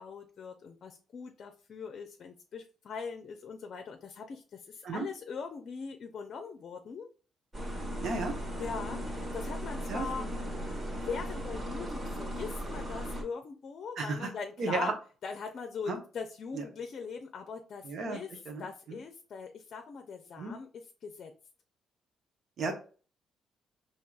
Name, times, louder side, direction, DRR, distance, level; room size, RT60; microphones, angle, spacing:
voice 1, 0.0-7.1 8.6-10.3 10.9-14.9 15.2-18.3 18.6-21.3, left 5 dB, 55° left, 5 dB, 0.5 m, -41 dB
sound 1, 7.5-13.2, equal, 30° right, 1.4 m, -37 dB
voice 2, 8.0-8.3 9.9-10.1 14.0-14.3 14.6-14.9 15.9-16.0 16.5-16.6 17.8-18.2 18.5-19.0 20.4-20.5 22.6-22.8, right 3 dB, 65° right, 4 dB, 0.9 m, -33 dB
4.5 x 2.8 x 2.4 m, 0.38 s
cardioid pair, 90°, 0 cm